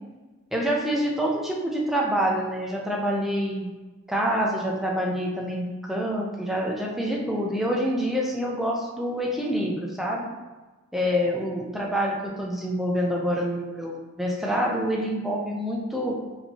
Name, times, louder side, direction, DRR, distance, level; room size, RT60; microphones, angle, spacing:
voice 1, 0.5-3.7 4.1-10.3 10.9-16.1, equal, ahead, -2 dB, 0.5 m, -26 dB
4.3 x 2.8 x 2.8 m, 1.2 s
head